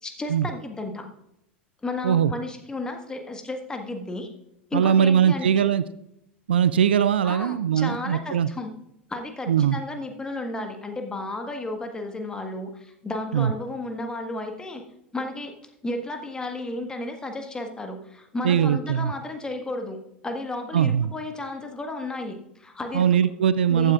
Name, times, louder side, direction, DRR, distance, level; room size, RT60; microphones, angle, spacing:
voice 1, 0.0-1.1 1.8-4.3 4.7-5.7 7.2-8.7 9.1-14.8 15.1-15.5 15.8-23.2 23.7-23.9, left 2 dB, 15° left, 4 dB, 1.5 m, -33 dB
voice 2, 4.7-5.8 6.5-8.5 9.5-9.8 13.3-13.5 18.4-19.1 20.7-21.1 22.9-23.9, right 8 dB, 70° right, 15 dB, 0.4 m, -21 dB
15.0 x 9.2 x 2.5 m, 0.79 s
figure-of-eight pair, 85°, 6 cm